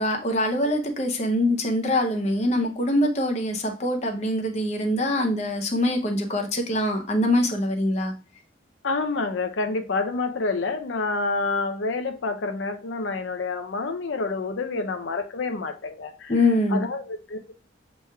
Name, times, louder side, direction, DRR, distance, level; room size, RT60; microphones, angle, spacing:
voice 1, 0.0-8.1 16.3-16.8, left 1 dB, 35° left, 3 dB, 0.7 m, -24 dB
voice 2, 8.8-16.4 16.7-17.5, left 3 dB, 85° left, 6 dB, 0.6 m, -28 dB
7.0 x 3.0 x 2.3 m, 0.33 s
head